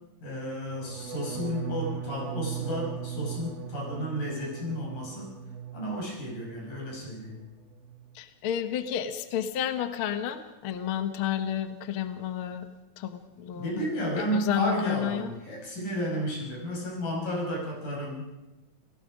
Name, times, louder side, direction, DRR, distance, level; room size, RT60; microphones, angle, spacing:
voice 1, 0.2-5.3 5.7-7.4 13.5-18.3, equal, 80° left, -1 dB, 7.2 m, -32 dB
sound 1, 0.7-6.6 6.9-7.4 7.7-8.1, right 8 dB, 65° right, 0.7 m, -38 dB
voice 2, 8.1-12.7 13.0-15.4, left 10 dB, 55° left, 9 dB, 1.6 m, -31 dB
29.0 x 18.0 x 5.1 m, 1.0 s
omnidirectional pair, 3.6 m